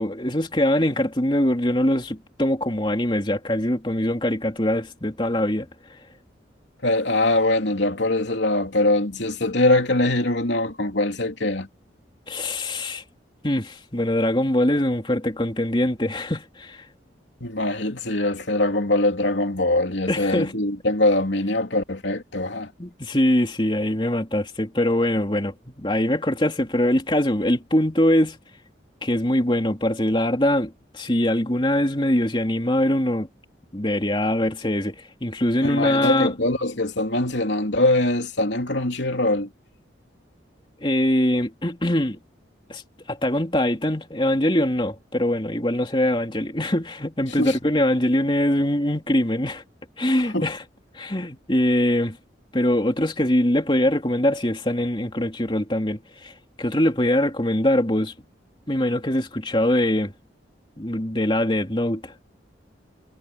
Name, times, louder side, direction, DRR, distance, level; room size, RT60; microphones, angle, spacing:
voice 1, 0.0-5.7 12.3-13.0 13.4-16.8 20.1-20.5 22.8-28.4 29.0-33.3 33.7-36.3 40.8-42.2 42.7-42.8 43.1-49.6 50.0-50.6 50.9-52.2 52.5-56.3 56.6-58.1 58.7-60.1 60.8-62.1, left 1 dB, 25° left, 3.0 m, -23 dB
voice 2, 6.8-11.7 17.4-22.7 35.6-39.5 47.4-47.6 50.3-50.5, left 2 dB, 75° left, 3.0 m, -22 dB
head